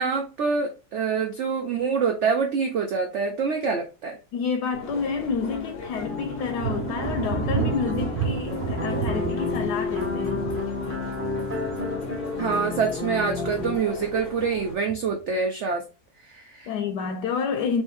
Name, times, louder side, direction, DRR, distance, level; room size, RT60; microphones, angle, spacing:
voice 1, 0.0-4.2 12.4-15.8 16.3-16.7, right 5 dB, 90° right, 0.6 m, -26 dB
voice 2, 4.3-10.5 16.7-17.8, left 5 dB, 75° left, 1.1 m, -29 dB
sound 1, 4.7-14.7, left 4 dB, 50° left, 0.7 m, -40 dB
sound 2, 6.0-13.8, left 3 dB, 10° right, 0.7 m, -30 dB
Thunder, 6.6-13.0 13.4-14.0 14.4-15.2, right 7 dB, 70° right, 1.0 m, -32 dB
3.2 x 3.1 x 3.3 m
omnidirectional pair, 1.9 m